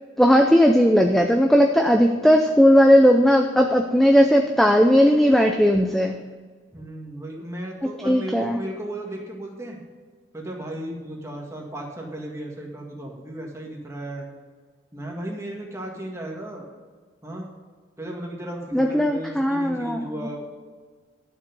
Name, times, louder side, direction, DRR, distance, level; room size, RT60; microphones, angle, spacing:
voice 1, 0.2-6.2 8.1-8.6 18.7-20.0, equal, ahead, 3 dB, 0.5 m, -17 dB
voice 2, 6.7-9.8 10.3-14.3 14.9-16.7 17.2-17.5 18.0-20.4, right 1 dB, 15° right, -1 dB, 1.8 m, -35 dB
12.0 x 7.0 x 5.4 m, 1.5 s
head